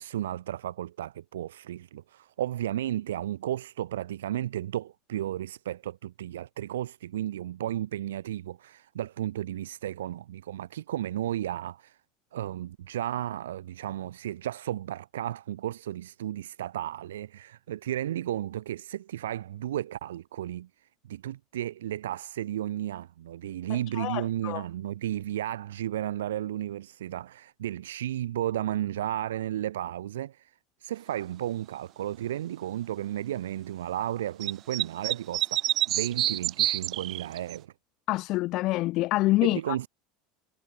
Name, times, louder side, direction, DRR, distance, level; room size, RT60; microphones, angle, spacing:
voice 1, 0.0-12.0 12.3-30.5 30.8-37.7 39.4-39.9, right 12 dB, 75° right, 1.2 m, -33 dB
voice 2, 24.0-24.6 38.1-39.6, left 19 dB, 50° left, 1.2 m, -26 dB
sound 1, 34.4-37.6, right 14 dB, 45° right, 0.6 m, -27 dB
hypercardioid pair, 80°, 0 cm